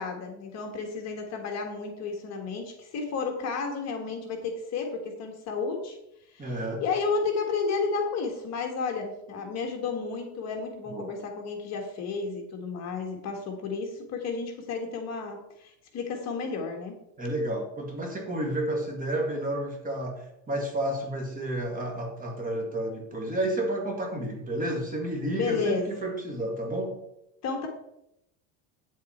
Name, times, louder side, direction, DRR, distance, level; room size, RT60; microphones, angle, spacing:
voice 1, 0.0-6.0 6.4-17.0 25.3-25.9 27.4-27.7, left 4 dB, 40° left, 3 dB, 1.6 m, -32 dB
voice 2, 6.4-6.8 10.9-11.1 17.2-27.0, right 1 dB, 20° right, 1 dB, 1.8 m, -31 dB
9.0 x 7.4 x 4.4 m, 0.83 s
cardioid pair, 155°, 41 cm